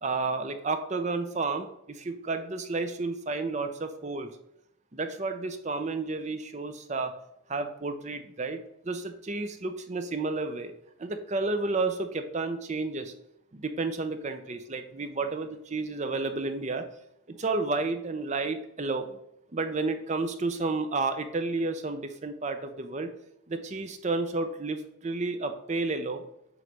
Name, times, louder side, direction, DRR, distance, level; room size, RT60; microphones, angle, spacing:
voice 1, 0.0-4.3 4.9-7.1 7.5-10.7 11.0-13.1 13.5-16.8 17.3-19.2 19.5-23.1 23.5-26.2, right 3 dB, 35° right, 8 dB, 0.6 m, -31 dB
7.7 x 3.2 x 5.2 m, 0.76 s
head